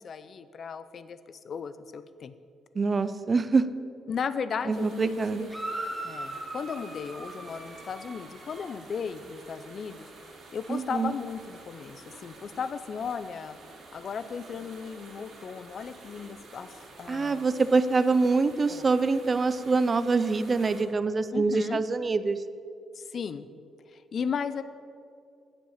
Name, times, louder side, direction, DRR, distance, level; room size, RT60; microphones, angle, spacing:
voice 1, 0.0-2.3 4.1-5.5 6.0-10.1 10.5-13.6 13.9-17.4 18.7-18.9 21.3-21.8 22.9-23.5 23.9-24.6, left 6 dB, 55° left, 13 dB, 0.5 m, -36 dB
voice 2, 2.7-3.7 4.7-5.5 10.7-11.1 17.1-22.4, right 4 dB, 35° right, 13 dB, 0.5 m, -25 dB
sound 1, 4.7-20.8, right 3 dB, 70° right, 2.4 m, -50 dB
sound 2, 5.5-8.8, right 1 dB, 5° left, 2.0 m, -39 dB
8.7 x 7.6 x 7.2 m, 2.4 s
cardioid pair, 90°, 0 cm